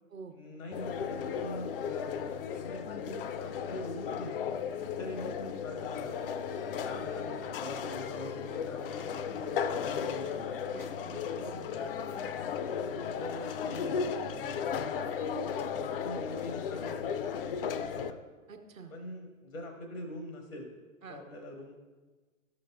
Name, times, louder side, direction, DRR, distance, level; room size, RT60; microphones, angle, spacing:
voice 1, 0.3-4.6 5.0-6.1 6.8-10.5 11.3-11.6 12.7-15.6 15.9-18.2 18.9-20.8 21.1-21.7, left 1 dB, 75° left, 3 dB, 1.0 m, -44 dB
sound 1, 0.7-18.1, left 7 dB, 45° left, 0.4 m, -35 dB
voice 2, 10.6-11.7 18.5-18.9 21.0-21.2, right 5 dB, 80° right, 5 dB, 1.0 m, -48 dB
12.5 x 6.4 x 2.2 m, 1.3 s
figure-of-eight pair, 100°, 40 cm